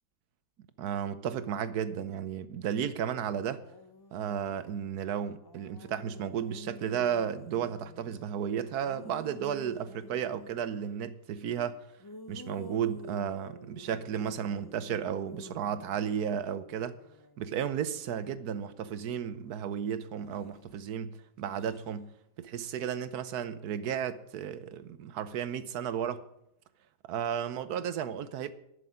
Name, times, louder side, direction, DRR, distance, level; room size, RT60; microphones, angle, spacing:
voice 1, 0.8-3.6 4.1-11.8 12.3-17.0 17.4-22.1 22.4-26.2 27.0-28.5, right 8 dB, 85° right, 1.3 m, -33 dB
sound 1, 3.3-4.8 5.3-8.3 8.8-10.7 12.0-19.6 20.2-20.8 21.4-21.9 22.6-22.8, left 2 dB, 40° left, 0.3 m, -51 dB
11.0 x 6.8 x 9.4 m
omnidirectional pair, 1.6 m